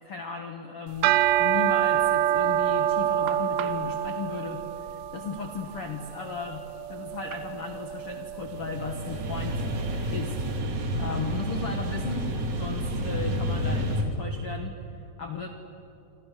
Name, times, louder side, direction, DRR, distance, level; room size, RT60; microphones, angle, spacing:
voice 1, 0.0-12.3 12.6-14.7 15.2-15.5, left 4 dB, 80° left, 4 dB, 1.2 m, -36 dB
sound 1, 0.9-10.2, right 11 dB, 80° right, 2.7 m, -27 dB
sound 2, 8.4-14.0, right 1 dB, 50° right, 3.1 m, -30 dB
27.5 x 27.0 x 6.7 m, 2.8 s
omnidirectional pair, 5.3 m